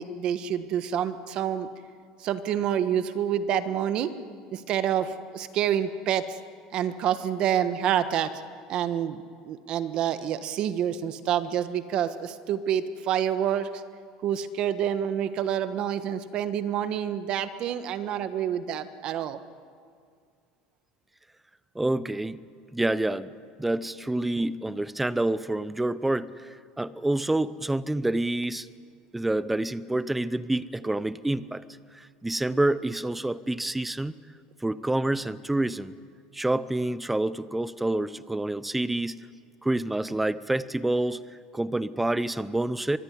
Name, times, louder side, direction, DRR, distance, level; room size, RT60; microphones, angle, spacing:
voice 1, 0.0-1.7 2.2-4.1 4.5-6.4 6.7-8.3 8.7-13.8 14.2-19.4, right 9 dB, 40° right, 11 dB, 1.4 m, -28 dB
voice 2, 21.7-22.4 22.7-23.3 23.6-28.7 29.1-31.6 31.9-34.1 34.6-35.9 36.3-39.3 39.6-41.2 41.5-43.0, right 1 dB, 5° right, 16 dB, 0.6 m, -27 dB
25.0 x 22.5 x 9.9 m, 2.1 s
cardioid pair, 160°, 2 cm